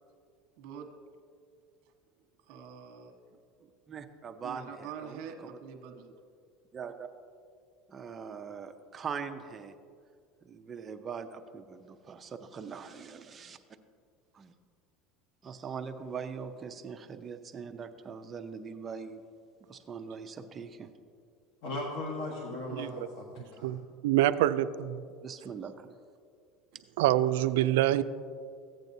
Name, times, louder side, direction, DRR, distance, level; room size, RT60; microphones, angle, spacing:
voice 1, 0.6-0.9 2.5-3.1 4.4-6.1 12.6-12.7, right 7 dB, 70° right, 4 dB, 1.2 m, -45 dB
voice 2, 3.9-5.6 6.7-7.1 7.9-9.7 10.4-13.6 14.3-14.5 15.4-19.2 19.7-20.9 25.2-25.9, right 6 dB, 25° right, 7 dB, 0.6 m, -42 dB
voice 3, 21.6-23.7, left 2 dB, 75° left, -1 dB, 1.3 m, -38 dB
voice 4, 23.6-24.9 27.0-28.0, right 13 dB, 90° right, 12 dB, 0.3 m, -26 dB
14.5 x 8.8 x 2.7 m, 2.2 s
supercardioid pair, 130°, 0 cm